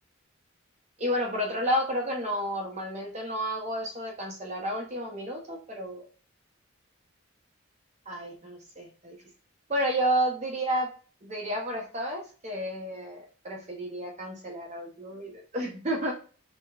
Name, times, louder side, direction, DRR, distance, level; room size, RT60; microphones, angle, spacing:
voice 1, 1.0-6.0 8.1-9.2 9.7-10.9 11.2-16.1, equal, 35° right, 0 dB, 0.6 m, -31 dB
4.5 x 2.2 x 2.3 m, 0.39 s
head